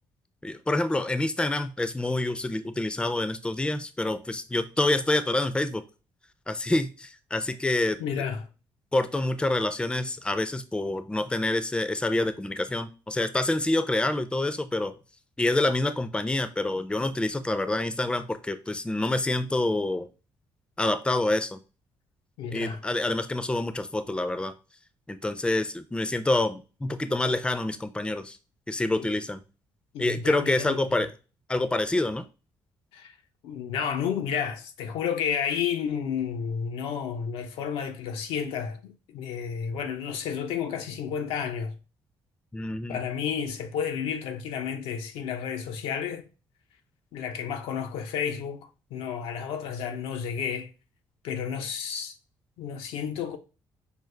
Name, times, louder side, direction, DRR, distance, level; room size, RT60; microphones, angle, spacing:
voice 1, 0.4-5.8 6.5-8.0 8.9-14.9 15.4-20.1 20.8-21.6 22.5-24.5 25.1-28.4 28.7-29.4 30.0-31.1 31.5-32.3 42.5-43.0, left 2 dB, 10° left, 0.4 m, -27 dB
voice 2, 8.0-8.5 22.4-22.8 29.0-29.1 29.9-31.1 32.9-33.2 33.4-41.8 42.9-46.3 47.1-50.7 51.2-52.1 52.6-53.4, left 7 dB, 85° left, 0.5 m, -31 dB
5.1 x 2.1 x 3.2 m
supercardioid pair, 75°, 9 cm